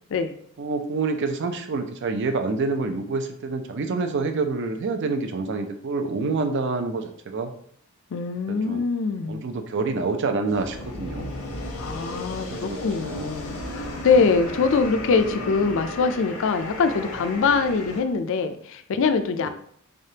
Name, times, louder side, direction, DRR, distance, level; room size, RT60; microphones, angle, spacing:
voice 1, 0.6-7.5 8.5-8.8 9.3-11.3 12.5-13.3, right 3 dB, 55° right, 7 dB, 0.4 m, -27 dB
voice 2, 8.1-9.5 11.8-19.5, left 4 dB, 60° left, 9 dB, 0.4 m, -23 dB
sound 1, 10.5-18.0, left 1 dB, 85° left, 0.7 m, -34 dB
3.7 x 3.4 x 2.7 m, 0.64 s
head